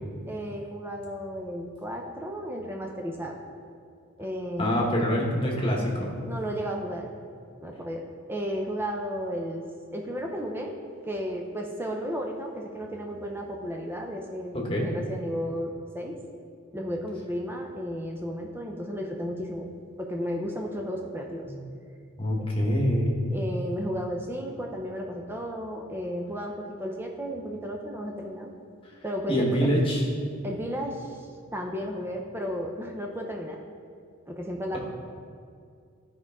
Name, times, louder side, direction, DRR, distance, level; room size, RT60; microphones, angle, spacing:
voice 1, 0.3-3.4 4.2-4.8 6.2-7.1 7.6-8.0 8.3-9.6 9.9-10.7 11.0-16.2 16.7-19.7 20.0-21.5 23.3-28.5 29.0-29.7 30.4-33.6 34.3-34.8, equal, 10° right, 1 dB, 0.6 m, -33 dB
voice 2, 4.6-6.2 14.5-14.9 21.4-21.6 22.2-23.3 29.3-30.0, equal, 25° left, -2 dB, 1.3 m, -25 dB
13.0 x 5.3 x 3.6 m, 2.3 s
head